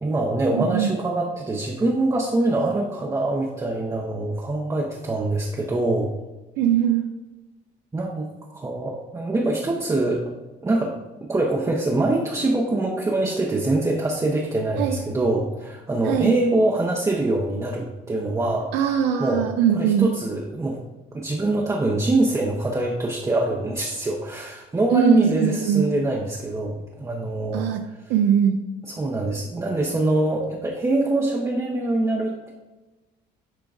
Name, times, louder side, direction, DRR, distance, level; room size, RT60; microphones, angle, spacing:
voice 1, 0.0-6.1 7.9-8.3 8.5-10.2 10.6-10.9 11.3-18.7 19.2-19.5 19.7-20.8 21.1-27.6 28.9-32.5, right 2 dB, 15° right, -2 dB, 0.8 m, -24 dB
voice 2, 0.5-0.9 6.6-7.1 14.8-15.0 16.0-16.3 18.7-20.1 24.9-25.8 27.5-27.8 28.1-28.6, right 9 dB, 90° right, 5 dB, 0.5 m, -21 dB
10.5 x 3.7 x 2.5 m, 1.1 s
cardioid pair, 110°, 17 cm